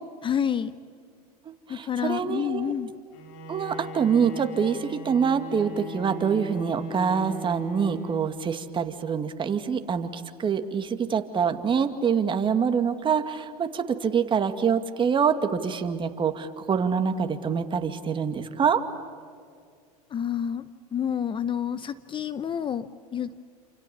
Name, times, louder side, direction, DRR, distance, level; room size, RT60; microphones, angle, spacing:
voice 1, 0.2-0.7 1.7-2.9 20.1-20.6 20.9-23.4, left 8 dB, 25° left, 14 dB, 0.8 m, -29 dB
voice 2, 1.7-2.7 3.5-18.8, right 6 dB, 25° right, 8 dB, 2.3 m, -25 dB
Bowed string instrument, 3.1-8.5, right 1 dB, 60° left, 5.0 m, -39 dB
29.5 x 28.0 x 7.2 m, 2.2 s
hypercardioid pair, 105°, 20 cm